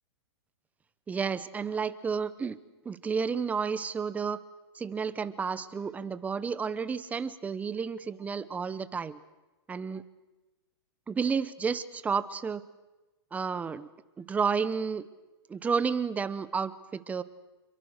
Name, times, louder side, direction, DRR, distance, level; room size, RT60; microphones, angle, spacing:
voice 1, 1.1-2.6 2.8-4.4 4.7-9.2 9.7-10.0 11.1-12.6 13.3-13.9 14.2-15.1 15.5-17.2, right 5 dB, 10° right, 15 dB, 0.9 m, -31 dB
28.0 x 23.0 x 6.6 m, 1.1 s
hypercardioid pair, 150°, 14 cm